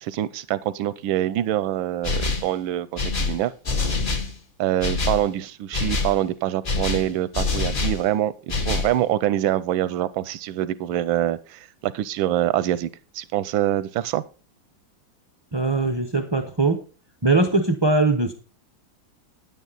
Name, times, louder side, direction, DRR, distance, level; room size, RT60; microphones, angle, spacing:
voice 1, 0.0-3.5 4.6-12.9 13.1-14.2, right 12 dB, 85° right, 17 dB, 1.4 m, -25 dB
sound 1, 2.0-2.5 3.0-4.3 4.8-5.2 5.7-6.2 6.6-8.0 8.5-9.0, left 3 dB, 35° left, 0.9 m, -25 dB
voice 2, 15.5-16.8 17.2-18.3, right 3 dB, 35° right, 6 dB, 0.4 m, -21 dB
9.8 x 9.2 x 4.0 m, 0.34 s
omnidirectional pair, 2.1 m